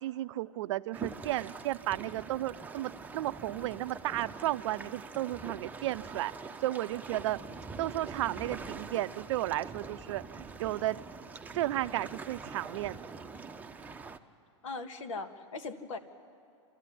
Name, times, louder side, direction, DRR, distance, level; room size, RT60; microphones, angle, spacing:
voice 1, 0.0-6.3 6.6-7.4 7.8-11.0 11.5-13.0, right 15 dB, 60° right, 15 dB, 0.6 m, -33 dB
sound 1, 0.9-14.2, right 4 dB, 10° right, 0.8 m, -44 dB
voice 2, 14.6-16.0, left 3 dB, 75° left, 9 dB, 1.8 m, -39 dB
28.0 x 13.5 x 10.0 m, 2.4 s
hypercardioid pair, 115°, 17 cm